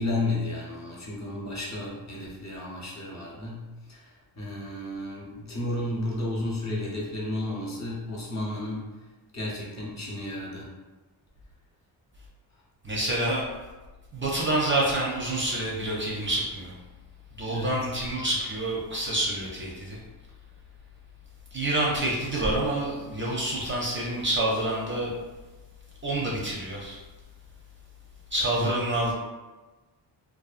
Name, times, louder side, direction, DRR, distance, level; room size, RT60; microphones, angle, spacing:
voice 1, 0.0-8.9 9.3-10.7 17.5-17.8 28.5-28.7, left 1 dB, 40° left, -5 dB, 0.8 m, -32 dB
voice 2, 12.8-13.4 14.1-16.7 17.4-20.0 21.5-25.1 26.0-27.0 28.3-29.1, right 1 dB, 30° right, -4 dB, 0.5 m, -27 dB
2.5 x 2.3 x 2.4 m, 1.2 s
cardioid pair, 100°, 44 cm